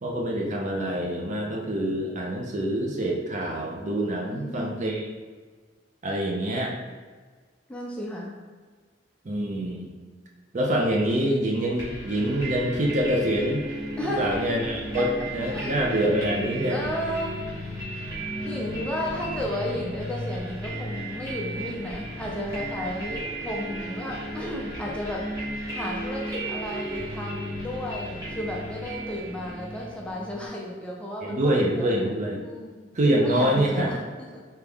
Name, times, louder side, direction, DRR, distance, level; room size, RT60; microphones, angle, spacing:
voice 1, 0.0-5.1 6.0-6.7 9.2-9.9 10.5-13.6 14.2-16.8 31.2-32.4 32.9-33.9, right 1 dB, 40° right, 0 dB, 0.6 m, -25 dB
voice 2, 4.3-4.7 7.7-8.4 14.0-14.4 14.9-15.1 15.5-15.8 16.7-17.8 18.4-25.4 25.7-32.1 32.4-32.9 33.2-34.4, left 1 dB, 5° left, -3 dB, 0.6 m, -33 dB
sound 1, 11.8-30.5, right 1 dB, 20° right, 1.4 m, -34 dB
3.4 x 2.9 x 3.5 m, 1.5 s
head